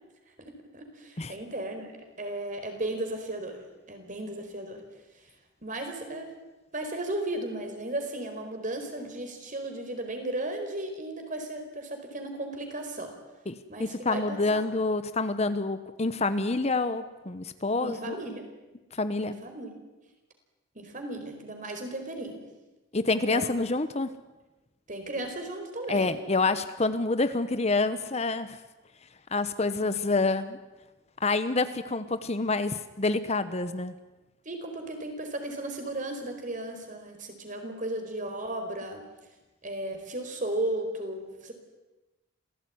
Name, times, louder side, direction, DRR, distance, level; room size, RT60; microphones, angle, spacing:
voice 1, 0.4-4.8 5.6-6.3 6.7-13.1 13.7-14.6 17.8-18.4 19.2-19.8 20.7-22.4 23.3-23.5 24.9-26.1 34.4-39.0 39.6-41.5, right 1 dB, 40° right, 5 dB, 4.6 m, -35 dB
voice 2, 13.5-18.2 18.9-19.4 22.9-24.1 25.9-28.6 29.3-30.6 31.2-33.9, left 3 dB, 35° left, 12 dB, 1.0 m, -27 dB
26.5 x 17.0 x 9.5 m, 1.1 s
head